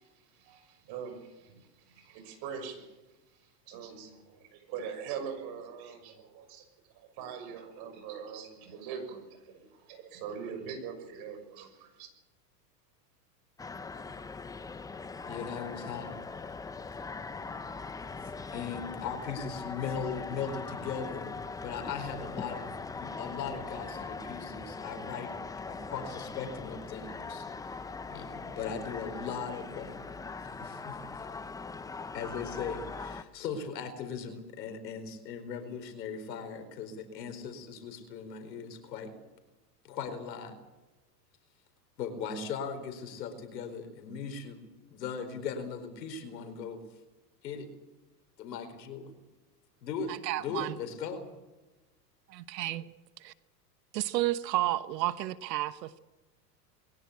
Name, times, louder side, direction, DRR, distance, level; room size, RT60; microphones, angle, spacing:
voice 1, 0.0-3.0 3.3-6.7 6.9-12.1, right 7 dB, 50° right, 8 dB, 6.4 m, -43 dB
sound 1, 13.6-33.2, left 4 dB, 5° left, 0.6 m, -41 dB
voice 2, 15.3-16.2 18.5-25.3 25.7-27.5 28.1-31.4 32.1-39.1 39.8-40.5 42.0-46.8 47.4-47.7 48.4-49.1 49.8-51.3, left 6 dB, 80° left, 8 dB, 4.6 m, -39 dB
voice 3, 50.1-50.8 52.3-52.9 53.2-53.3 53.9-56.0, right 15 dB, 75° right, 14 dB, 1.2 m, -31 dB
22.0 x 17.0 x 8.6 m, 1.1 s
supercardioid pair, 125°, 49 cm